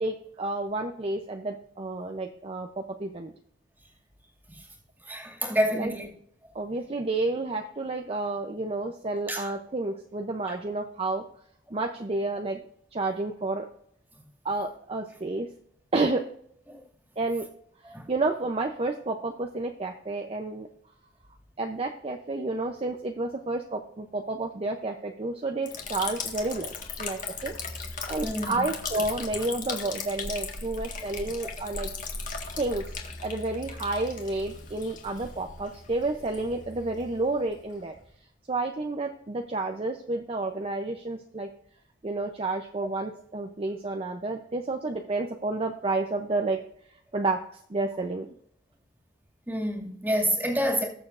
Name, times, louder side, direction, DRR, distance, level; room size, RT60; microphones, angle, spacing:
voice 1, 0.0-3.3 5.7-5.9 6.5-11.2 11.7-12.6 12.9-13.7 14.4-15.5 15.9-16.2 17.2-17.5 18.1-20.7 21.6-26.7 27.0-31.9 32.6-32.9 33.2-37.9 38.5-41.5 42.0-46.6 47.1-48.3, right 2 dB, 30° right, 0.6 m, -30 dB
voice 2, 5.1-6.1 9.3-9.5 16.7-16.8 17.9-18.0 28.2-28.6 49.5-50.9, equal, 10° right, 2.2 m, -27 dB
Liquid, 25.7-38.1, left 4 dB, 45° left, 1.7 m, -38 dB
19.5 x 6.9 x 2.5 m
head